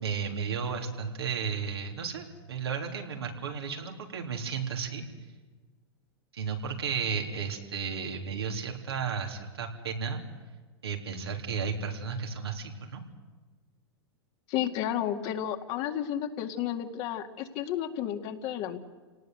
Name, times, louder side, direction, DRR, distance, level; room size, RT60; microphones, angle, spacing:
voice 1, 0.0-5.0 6.3-10.2 10.8-13.0, right 6 dB, 85° right, 2 dB, 3.6 m, -33 dB
voice 2, 14.5-18.8, left 10 dB, 50° left, 6 dB, 2.2 m, -32 dB
28.0 x 18.5 x 8.0 m, 1.4 s
hypercardioid pair, 100°, 13 cm